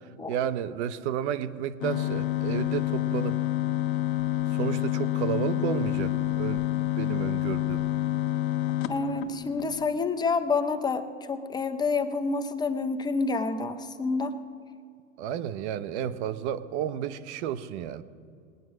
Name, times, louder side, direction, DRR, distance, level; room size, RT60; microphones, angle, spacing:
voice 1, 0.0-3.5 4.5-7.9 15.2-18.0, right 9 dB, 55° right, 14 dB, 0.9 m, -32 dB
sound 1, 1.8-9.9, left 14 dB, 50° left, 1.1 m, -28 dB
voice 2, 8.9-14.4, left 4 dB, 10° left, 8 dB, 0.5 m, -28 dB
20.0 x 9.3 x 6.2 m, 2.3 s
hypercardioid pair, 125°, 40 cm